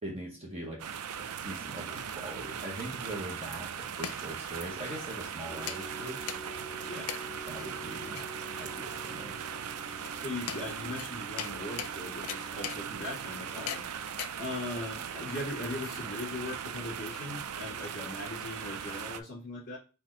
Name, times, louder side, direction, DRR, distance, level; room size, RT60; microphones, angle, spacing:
voice 1, 0.0-0.9 1.3-6.2 7.5-8.2 8.6-9.4, right 1 dB, 30° right, -1 dB, 0.9 m, -41 dB
sound 1, 0.8-19.2, right 8 dB, 85° right, 0.5 m, -39 dB
sound 2, 1.5-16.4, left 9 dB, 85° left, 0.5 m, -44 dB
sound 3, 5.5-13.7, equal, 20° left, 1.0 m, -48 dB
voice 2, 10.1-13.9 14.4-19.8, left 2 dB, 40° left, -8 dB, 1.8 m, -39 dB
4.2 x 2.8 x 4.2 m, 0.33 s
head